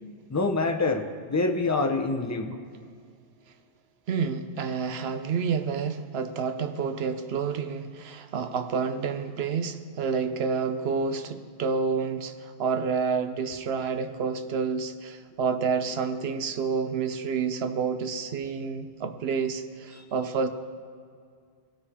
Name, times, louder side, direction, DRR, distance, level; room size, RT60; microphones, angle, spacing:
voice 1, 0.3-2.5, left 3 dB, 25° left, 5 dB, 0.4 m, -26 dB
voice 2, 4.1-20.5, right 5 dB, 65° right, 9 dB, 0.8 m, -29 dB
18.0 x 6.9 x 3.6 m, 2.1 s
omnidirectional pair, 1.2 m